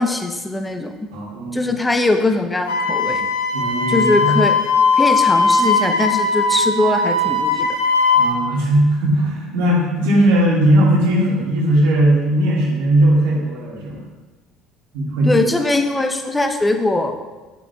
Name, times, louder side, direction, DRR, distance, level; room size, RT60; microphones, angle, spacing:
voice 1, 0.0-0.9 1.5-3.3 3.9-4.6 5.0-7.7 15.2-17.1, left 2 dB, 15° left, 5 dB, 0.8 m, -20 dB
voice 2, 1.1-1.8 3.5-4.4 8.1-14.0 14.9-15.5, right 1 dB, 65° right, -3 dB, 1.9 m, -18 dB
Wind instrument woodwind instrument, 2.7-8.3, left 3 dB, 75° left, 1.2 m, -18 dB
9.2 x 7.6 x 2.4 m, 1.2 s
figure-of-eight pair, 60°, 0 cm